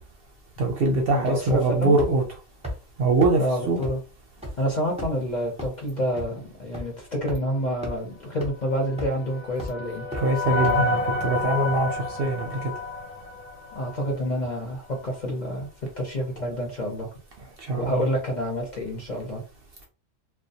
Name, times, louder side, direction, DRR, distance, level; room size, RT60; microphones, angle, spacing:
voice 1, 0.6-2.2 3.0-3.8 10.1-12.7 17.6-18.1, right 3 dB, 60° right, 1 dB, 0.6 m, -23 dB
voice 2, 1.1-2.0 3.4-4.0 4.6-10.0 13.7-15.7 16.0-17.1 17.8-19.4, equal, 50° left, -1 dB, 0.6 m, -28 dB
sound 1, 1.5-1.7 2.0-2.1 2.6-2.7 3.2-3.3 3.8-3.9 4.4-4.5 5.0-5.2 5.6-5.7 6.2-6.3 6.7-6.8 7.3-7.4 7.8-7.9 8.4-8.5 9.0-9.2 9.6-9.7 10.1-10.2 10.6-10.7, equal, 10° right, 0.5 m, -32 dB
sound 2, 8.8-14.2, left 3 dB, 85° left, 0.3 m, -29 dB
2.2 x 2.2 x 2.7 m, 0.34 s
omnidirectional pair, 1.3 m